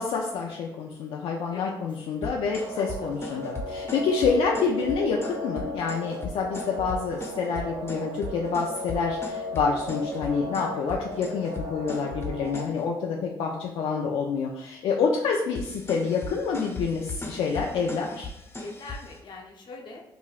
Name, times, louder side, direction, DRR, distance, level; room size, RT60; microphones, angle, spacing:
voice 1, 0.0-18.3, left 5 dB, 75° left, -1 dB, 0.4 m, -27 dB
voice 2, 2.0-2.3 2.7-3.4 3.9-4.0 18.6-20.0, left 3 dB, 55° left, 0 dB, 0.8 m, -43 dB
sound 1, 2.2-12.8 15.5-19.2, left 2 dB, 25° left, 0.9 m, -38 dB
sound 2, 2.5-12.6, equal, 90° right, 0.4 m, -36 dB
4.8 x 2.6 x 2.4 m, 0.89 s
cardioid pair, 70°, 9 cm